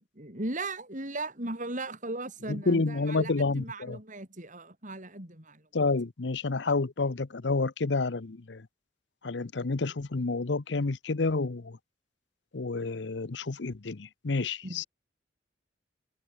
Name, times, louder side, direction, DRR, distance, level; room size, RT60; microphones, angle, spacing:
voice 1, 0.0-5.7 14.6-14.9, right 2 dB, 45° right, 7.3 m, -37 dB
voice 2, 2.5-4.0 5.7-8.7 9.2-11.8 12.5-14.8, left 3 dB, 65° left, 0.8 m, -29 dB
head